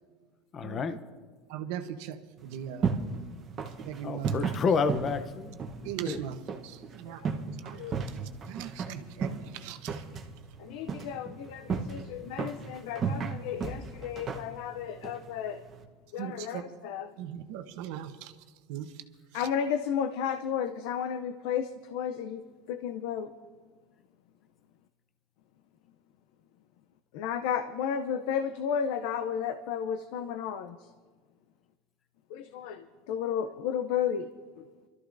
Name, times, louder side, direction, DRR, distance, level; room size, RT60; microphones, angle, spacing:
voice 1, 0.5-1.0 4.0-5.6 5.8-6.2 11.7-12.0, left 5 dB, 30° left, 0.6 m, -30 dB
voice 2, 1.5-2.2 2.4-2.9 3.8-4.3 5.8-6.4 6.6-7.2 7.6-7.8 8.5-10.0 16.2-16.6 17.2-18.3 18.7-18.9, right 10 dB, 70° right, 0.9 m, -38 dB
sound 1, 2.4-15.9, right 5 dB, 30° right, 0.9 m, -36 dB
voice 3, 10.6-15.6 16.1-17.1 19.3-23.3 27.1-30.9 32.3-34.3 34.6-34.7, left 8 dB, 70° left, 0.5 m, -33 dB
27.5 x 13.0 x 2.6 m
supercardioid pair, 145°, 0 cm